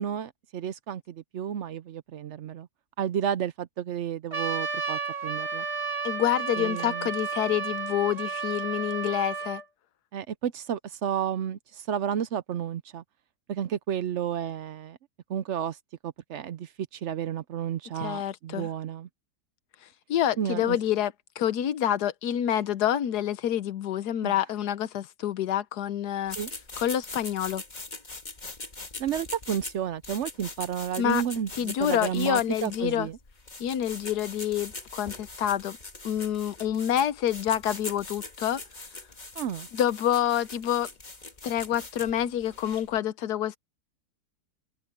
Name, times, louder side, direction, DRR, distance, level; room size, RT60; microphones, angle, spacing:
voice 1, 0.0-2.7 3.0-5.7 6.6-7.1 10.1-13.0 13.5-15.0 15.3-19.1 20.4-20.8 24.2-24.4 26.4-26.5 29.0-33.2 39.3-39.7, right 9 dB, 65° right, 0.7 m, -32 dB
Trumpet, 4.3-9.6, right 5 dB, 35° right, 3.0 m, -32 dB
voice 2, 6.0-9.6 18.0-18.7 20.1-26.4 26.8-27.6 31.0-31.2 31.6-33.1 33.6-35.8 36.0-38.6 39.7-40.9 41.4-43.6, left 11 dB, 80° left, 1.4 m, -27 dB
sound 1, 26.3-43.0, left 3 dB, 25° left, 2.0 m, -42 dB
open air
omnidirectional pair, 1.7 m